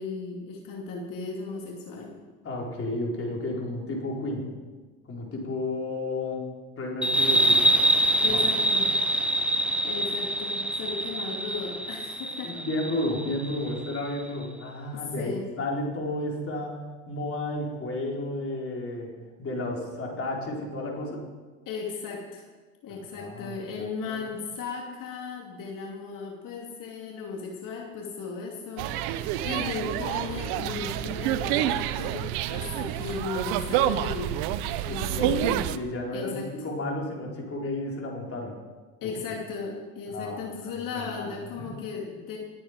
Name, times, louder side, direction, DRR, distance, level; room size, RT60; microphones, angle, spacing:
voice 1, 0.0-2.1 8.2-9.0 9.8-12.6 14.9-15.4 21.7-22.5 22.8-34.5 34.8-35.6 36.1-36.5 39.0-42.4, left 5 dB, 50° left, 0 dB, 2.6 m, -36 dB
voice 2, 2.4-4.5 5.1-6.4 6.8-7.6 8.3-8.4 12.4-16.8 17.1-19.1 19.4-21.2 23.1-24.2 34.8-38.5 39.0-39.1 40.1-41.8, left 1 dB, 35° left, -1 dB, 4.1 m, -32 dB
sound 1, 7.0-14.2, right 1 dB, 5° right, 0.6 m, -25 dB
sound 2, 28.8-35.8, right 12 dB, 65° right, 0.8 m, -28 dB
20.0 x 8.9 x 5.1 m, 1.3 s
hypercardioid pair, 80°, 41 cm